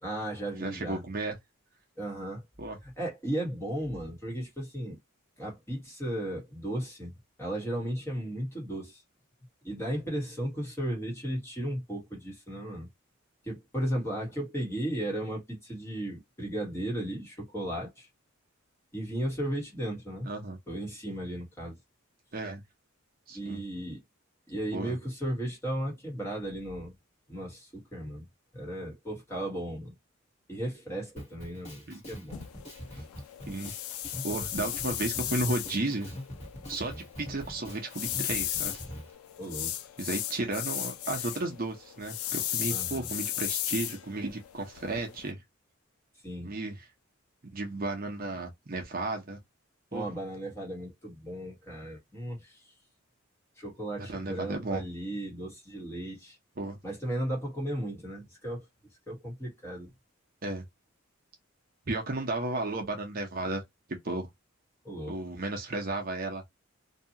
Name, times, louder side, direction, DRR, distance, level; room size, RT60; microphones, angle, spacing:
voice 1, 0.0-1.0 2.0-2.4 2.8-5.0 5.4-7.1 7.4-9.0 9.6-12.9 13.4-18.1 18.9-20.3 20.7-21.8 23.3-24.0 24.5-26.9 27.3-28.3 28.5-29.9 30.5-32.4 39.4-39.7 42.7-43.1 46.2-46.5 49.9-52.6 53.6-56.4 56.8-58.6 59.1-59.9 64.8-65.1, right 1 dB, 10° left, 1.2 m, -35 dB
voice 2, 0.6-1.4 2.6-2.8 20.2-20.6 22.3-22.6 23.3-23.6 24.7-25.0 31.9-32.0 32.9-33.0 33.5-33.7 34.2-36.1 36.7-38.8 40.0-45.4 46.4-46.9 47.5-49.4 49.9-50.1 54.0-54.8 56.6-56.8 60.4-60.7 61.9-63.6 64.0-64.3 65.1-66.4, right 2 dB, 40° right, 0.7 m, -33 dB
Drum kit, 31.2-39.1, equal, 30° left, 1.2 m, -43 dB
sound 1, 32.3-45.3, left 12 dB, 90° left, 0.4 m, -36 dB
2.7 x 2.3 x 2.7 m
head